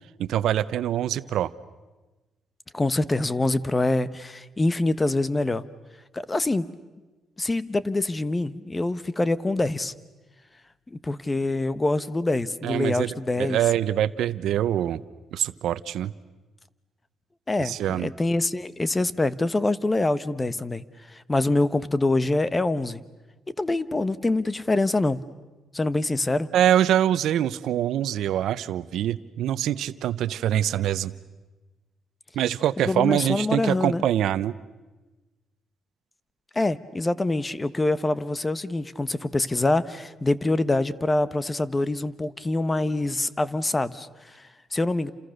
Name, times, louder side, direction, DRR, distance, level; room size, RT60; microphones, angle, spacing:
voice 1, 0.2-1.5 12.6-15.0 15.3-16.1 17.6-18.1 26.5-31.1 32.3-34.5, right 11 dB, 80° right, 15 dB, 0.9 m, -24 dB
voice 2, 2.7-5.6 6.1-6.7 7.4-9.9 10.9-13.6 17.5-23.0 23.6-25.2 25.7-26.5 32.8-34.0 36.5-45.1, left 2 dB, 20° left, 16 dB, 1.1 m, -25 dB
30.0 x 28.0 x 6.6 m, 1.2 s
cardioid pair, 90°, 0 cm